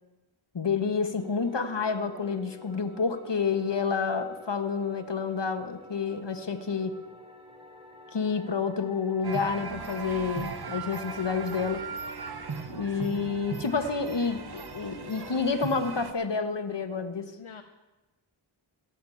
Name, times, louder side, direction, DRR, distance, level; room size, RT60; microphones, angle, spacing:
voice 1, 0.5-7.0 8.1-11.9 12.7-17.3, left 5 dB, 60° left, 9 dB, 1.3 m, -29 dB
sound 1, 1.2-16.1, left 1 dB, 10° right, 2.6 m, -49 dB
sound 2, 9.2-16.1, right 5 dB, 50° right, 1.0 m, -38 dB
voice 2, 12.9-13.3 17.4-17.6, left 6 dB, 80° left, 7 dB, 0.8 m, -43 dB
15.5 x 7.4 x 8.5 m, 1.1 s
wide cardioid pair, 45°, 48 cm